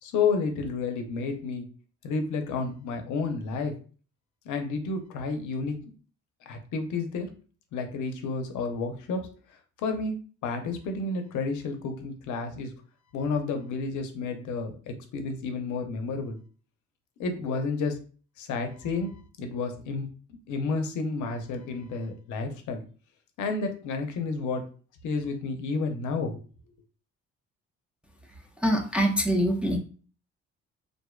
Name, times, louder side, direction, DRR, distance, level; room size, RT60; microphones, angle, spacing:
voice 1, 0.0-1.7 2.0-3.7 4.5-5.8 6.5-7.3 7.7-9.2 9.8-10.1 10.4-12.7 13.1-16.4 17.2-18.0 18.4-19.1 19.4-20.1 20.5-22.8 23.4-24.6 25.0-26.4, left 4 dB, 80° left, 6 dB, 0.5 m, -30 dB
voice 2, 28.6-29.8, equal, 5° right, 1 dB, 0.3 m, -24 dB
2.5 x 2.1 x 2.3 m, 0.39 s
cardioid pair, 90°, 30 cm